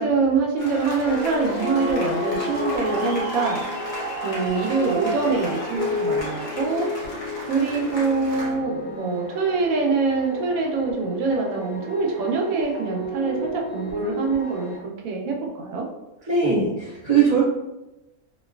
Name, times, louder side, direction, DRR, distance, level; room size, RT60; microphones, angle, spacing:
voice 1, 0.0-3.7 4.2-6.9 7.5-14.7 15.0-15.9, right 4 dB, 75° right, 0 dB, 1.0 m, -24 dB
sound 1, 0.6-8.5, right 1 dB, 40° left, 0.8 m, -33 dB
sound 2, 1.0-14.8, left 2 dB, 90° left, 1.5 m, -33 dB
voice 2, 16.3-17.4, right 5 dB, 30° right, -10 dB, 0.9 m, -20 dB
3.0 x 2.6 x 2.2 m, 1.0 s
omnidirectional pair, 1.5 m